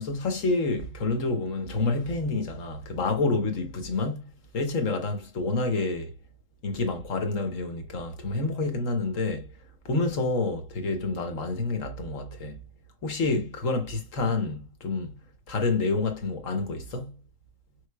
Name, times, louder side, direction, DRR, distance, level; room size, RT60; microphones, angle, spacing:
voice 1, 0.0-4.3 4.5-6.1 6.6-9.5 9.8-12.6 13.0-15.1 15.5-17.2, left 3 dB, 60° left, 1.4 m, -28 dB
5.1 x 3.3 x 2.3 m
omnidirectional pair, 1.6 m